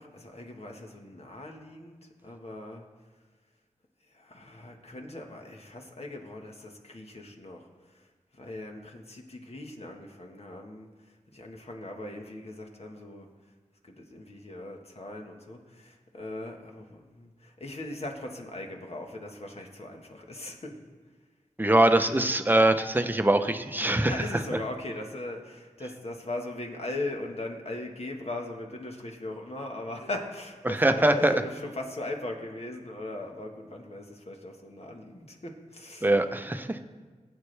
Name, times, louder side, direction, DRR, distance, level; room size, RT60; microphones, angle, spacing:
voice 1, 0.0-2.8 4.1-7.7 8.3-10.9 11.3-13.3 13.8-20.8 24.0-36.1, left 2 dB, 55° left, 2 dB, 1.5 m, -39 dB
voice 2, 21.6-24.4 30.6-31.4 36.0-36.8, right 1 dB, 15° right, 7 dB, 0.8 m, -23 dB
19.5 x 8.3 x 3.4 m, 1.4 s
wide cardioid pair, 75°, 13 cm